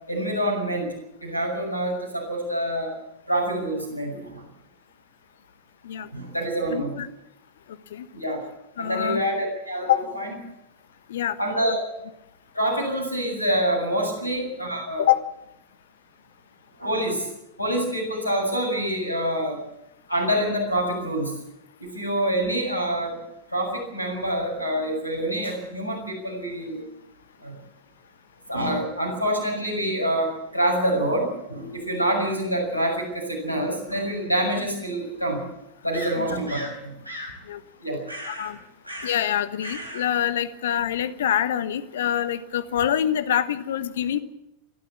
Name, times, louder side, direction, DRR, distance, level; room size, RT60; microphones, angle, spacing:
voice 1, 0.1-0.9 1.2-3.0 3.3-4.4 6.1-6.9 8.1-8.4 8.8-10.3 11.4-11.8 12.5-15.1 16.8-17.3 17.6-19.6 20.1-21.3 21.8-23.2 23.5-26.8 27.4-27.6 28.5-35.4 35.8-36.9 37.8-38.0, right 1 dB, 85° left, 2 dB, 7.2 m, -26 dB
voice 2, 6.7-7.1 7.9-8.1 8.8-9.2 9.9-10.0 11.1-11.4 11.7-11.8 15.0-15.2 36.2-36.3 37.5-37.6 38.2-38.6 39.0-44.2, left 10 dB, 60° left, 15 dB, 1.2 m, -25 dB
sound 1, 33.9-34.0 35.9-36.8 37.1-37.4 38.1-38.5 38.8-39.3 39.6-40.1, equal, 85° right, 3.7 m, -36 dB
29.0 x 12.5 x 8.6 m, 0.86 s
figure-of-eight pair, 90°, 0 cm